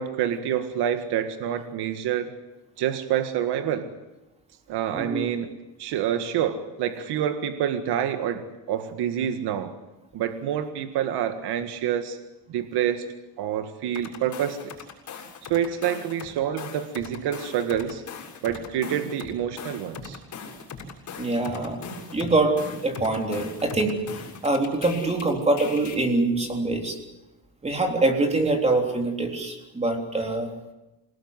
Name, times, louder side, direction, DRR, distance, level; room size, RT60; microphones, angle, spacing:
voice 1, 0.0-2.3 2.8-3.9 4.7-5.5 5.8-9.7 10.1-12.2 12.5-14.8 15.4-18.0 18.4-20.2, right 9 dB, 80° right, 8 dB, 1.8 m, -27 dB
voice 2, 4.9-5.3 21.2-21.8 22.1-22.6 22.8-24.0 24.4-27.0 27.6-30.5, right 2 dB, 15° right, 3 dB, 3.7 m, -24 dB
sound 1, 13.9-16.3 16.6-25.2 25.6-25.9, left 5 dB, 45° left, 7.1 m, -39 dB
27.5 x 18.5 x 8.1 m, 1.0 s
cardioid pair, 170°, 39 cm